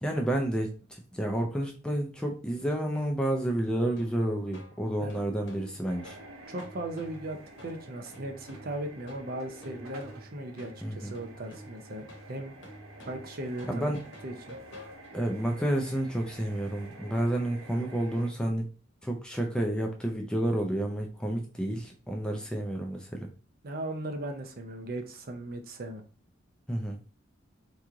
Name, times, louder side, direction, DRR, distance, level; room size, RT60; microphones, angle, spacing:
voice 1, 0.0-6.2 10.8-11.1 13.7-14.0 15.1-18.7 19.0-23.3 26.7-27.0, right 1 dB, 5° left, 2 dB, 0.3 m, -30 dB
sound 1, 3.9-15.4, equal, 60° left, 0.9 m, -50 dB
sound 2, 5.9-18.3, right 2 dB, 90° right, 0.7 m, -50 dB
voice 2, 6.5-12.5 13.0-13.9 14.2-14.6 23.6-26.0, right 1 dB, 45° right, 5 dB, 0.5 m, -38 dB
3.0 x 2.3 x 3.7 m, 0.37 s
head